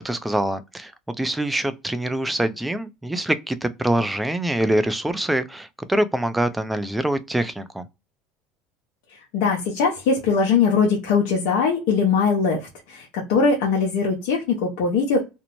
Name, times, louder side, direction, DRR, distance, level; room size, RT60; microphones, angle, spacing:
voice 1, 0.0-7.9, right 1 dB, 5° right, 0.4 m, -24 dB
voice 2, 9.3-15.2, left 5 dB, 75° left, 0.8 m, -21 dB
2.6 x 2.0 x 3.0 m
supercardioid pair, 105°, 0 cm